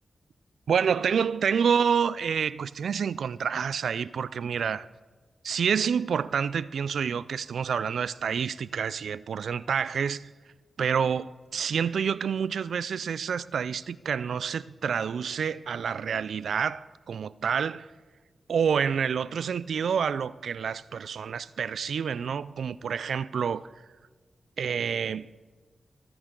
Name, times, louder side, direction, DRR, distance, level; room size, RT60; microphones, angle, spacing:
voice 1, 0.7-4.9 5.4-10.3 10.8-17.9 18.5-23.7 24.6-25.3, right 7 dB, 85° right, 0.3 m, -28 dB
26.0 x 9.6 x 3.8 m
cardioid pair, 55°, 0 cm